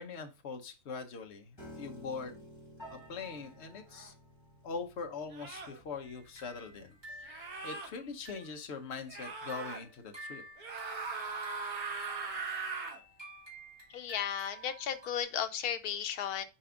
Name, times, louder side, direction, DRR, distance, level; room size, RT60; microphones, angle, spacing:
voice 1, 0.0-2.4 2.9-4.1 4.6-10.4, left 5 dB, 50° left, 1.2 m, -42 dB
Piano, 1.6-7.8, equal, 15° left, 3.5 m, -53 dB
sound 1, 3.9-4.1 5.3-5.8 7.2-7.9 9.1-9.8 10.6-13.0, right 4 dB, 70° right, 1.9 m, -39 dB
sound 2, 6.0-8.7 9.0-15.2, right 1 dB, 15° right, 2.8 m, -52 dB
voice 2, 13.9-16.5, left 9 dB, 85° left, 1.2 m, -35 dB
5.9 x 4.8 x 3.8 m
omnidirectional pair, 1.6 m